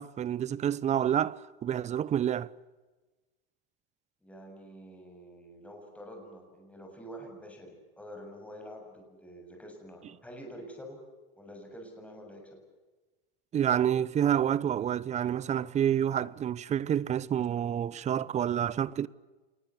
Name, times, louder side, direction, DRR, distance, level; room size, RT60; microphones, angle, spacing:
voice 1, 0.0-2.5 13.5-19.1, right 10 dB, 25° right, 0.8 m, -28 dB
voice 2, 4.2-11.0 11.4-12.6, equal, 5° left, 7.3 m, -47 dB
27.5 x 20.0 x 8.4 m
hypercardioid pair, 115°, 29 cm